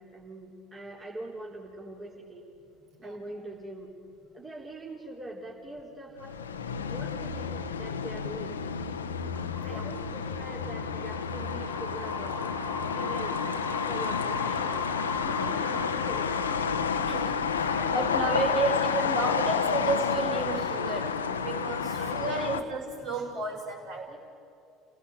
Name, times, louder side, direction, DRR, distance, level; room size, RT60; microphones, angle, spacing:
voice 1, 0.0-2.5 3.0-3.9 4.3-6.4 6.9-8.6 9.6-13.4 13.9-16.7 17.7-19.6 22.0-22.7 24.1-24.2, right 2 dB, 25° right, -3 dB, 3.9 m, -43 dB
sound 1, 6.2-22.6, left 6 dB, 85° left, 0.9 m, -30 dB
sound 2, 9.4-18.8, left 2 dB, ahead, 2.6 m, -41 dB
voice 2, 9.5-9.8 15.2-15.4 16.9-24.2, right 2 dB, 60° right, 1 dB, 6.6 m, -32 dB
29.0 x 17.0 x 8.1 m, 2.7 s
figure-of-eight pair, 65°, 0 cm